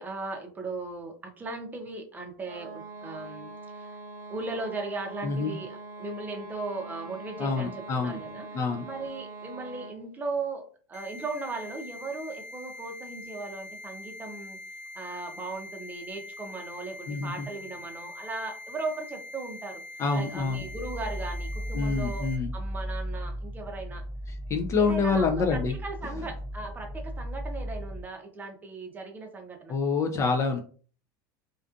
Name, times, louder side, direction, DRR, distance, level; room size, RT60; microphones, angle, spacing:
voice 1, 0.0-4.0 4.3-10.6 10.9-14.6 14.9-19.8 20.1-24.0 24.7-29.8, right 3 dB, 15° right, 3 dB, 0.6 m, -37 dB
sound 1, 2.4-10.1, right 3 dB, 80° right, 0.8 m, -43 dB
voice 2, 5.2-5.5 7.4-8.2 8.5-8.8 17.1-17.5 20.0-20.6 21.7-22.5 24.5-25.7 29.7-30.6, left 4 dB, 30° left, 5 dB, 0.3 m, -27 dB
sound 2, 10.9-22.4, left 2 dB, 80° left, 0.8 m, -43 dB
sound 3, 20.4-28.0, equal, 10° left, 0.9 m, -36 dB
2.5 x 2.3 x 2.4 m, 0.42 s
supercardioid pair, 130°, 10 cm